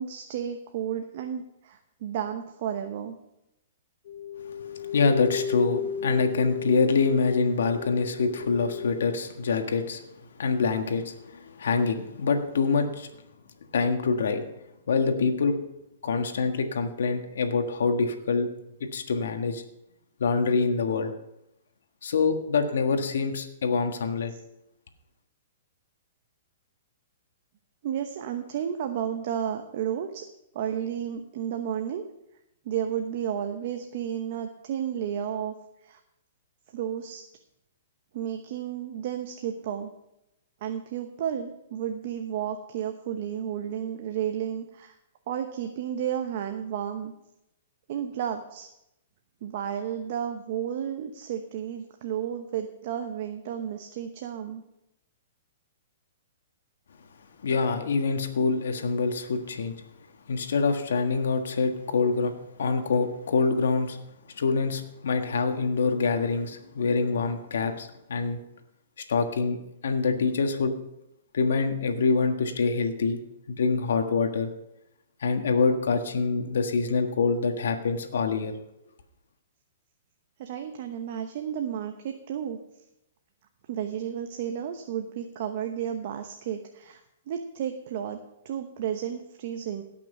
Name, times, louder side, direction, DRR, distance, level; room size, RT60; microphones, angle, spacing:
voice 1, 0.0-3.1 24.3-24.4 27.8-30.2 30.5-32.0 32.6-35.5 35.8-36.0 36.7-37.2 38.1-39.9 40.6-45.0 45.3-47.1 47.9-48.7 49.4-54.6 80.4-82.6 83.7-87.0 87.3-88.2 88.4-89.8, right 9 dB, 50° right, 5 dB, 0.9 m, -32 dB
sound 1, 4.1-9.2, left 7 dB, 60° left, 0.9 m, -34 dB
voice 2, 4.6-10.0 10.4-13.1 13.7-14.4 14.9-15.5 16.0-18.5 18.9-19.6 20.2-21.1 22.0-24.3 57.4-59.7 60.3-62.3 62.6-64.0 64.4-68.4 69.1-69.6 69.8-70.7 71.3-73.2 73.5-74.5 75.2-78.5, left 4 dB, 80° left, 6 dB, 1.5 m, -25 dB
17.5 x 6.1 x 5.4 m, 0.84 s
hypercardioid pair, 150°, 0 cm